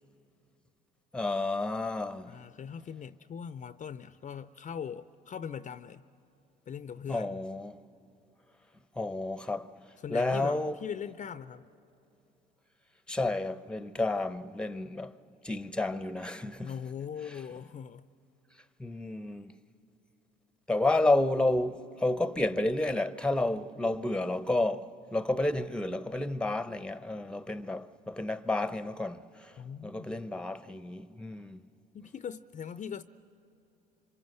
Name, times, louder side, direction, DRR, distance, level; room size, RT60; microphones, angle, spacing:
voice 1, 1.1-2.4 7.1-7.8 9.0-9.7 10.1-10.8 13.1-15.1 15.4-16.7 18.8-19.5 20.7-29.5 29.8-31.6, left 2 dB, 5° left, 0.8 m, -30 dB
voice 2, 2.3-6.0 6.7-7.4 10.0-11.7 16.6-18.0 29.6-30.2 31.9-33.0, left 7 dB, 35° left, 0.6 m, -40 dB
27.0 x 25.0 x 7.9 m
hypercardioid pair, 60°, 21 cm